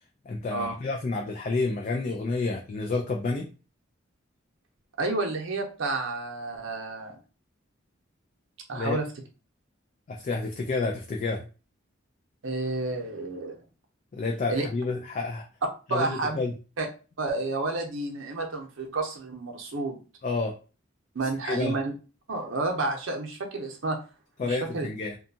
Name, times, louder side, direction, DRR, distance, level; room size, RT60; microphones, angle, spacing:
voice 1, 0.3-3.5 8.7-9.0 10.1-11.5 14.1-15.5 15.9-16.5 20.2-20.5 21.4-21.8 24.4-25.2, left 3 dB, 40° left, 1 dB, 0.3 m, -29 dB
voice 2, 5.0-7.2 8.7-9.1 12.4-13.6 14.5-14.7 15.9-16.4 16.8-16.9 17.2-20.0 21.1-21.9 22.3-24.0 24.4-24.9, right 3 dB, 75° right, 2 dB, 0.7 m, -30 dB
2.7 x 2.3 x 2.6 m, 0.34 s
head